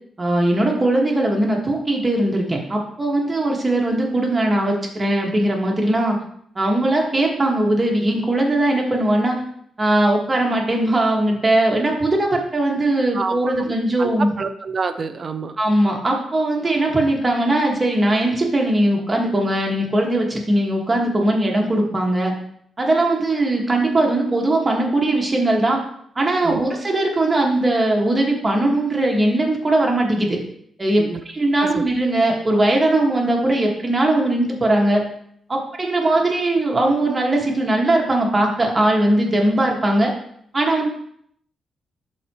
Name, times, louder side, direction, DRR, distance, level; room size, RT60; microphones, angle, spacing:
voice 1, 0.2-6.2 6.5-9.4 9.8-14.3 15.6-22.3 22.8-25.8 26.1-30.4 30.8-35.0 35.5-40.1 40.5-40.9, right 1 dB, 20° right, 0 dB, 1.5 m, -19 dB
voice 2, 13.1-13.7 14.0-15.6 26.4-26.7 31.0-31.2 31.7-31.9, right 4 dB, 40° right, 9 dB, 0.4 m, -27 dB
11.5 x 4.2 x 3.0 m, 0.67 s
cardioid pair, 130°, 0 cm